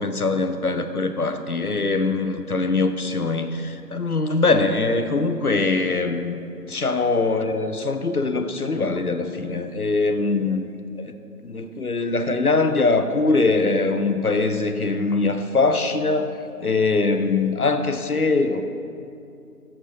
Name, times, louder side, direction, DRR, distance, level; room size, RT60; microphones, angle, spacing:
voice 1, 0.0-6.3 6.7-10.7 11.0-11.1 11.4-18.6, left 3 dB, 65° left, 8 dB, 0.6 m, -22 dB
6.6 x 5.6 x 6.8 m, 2.6 s
figure-of-eight pair, 180°, 49 cm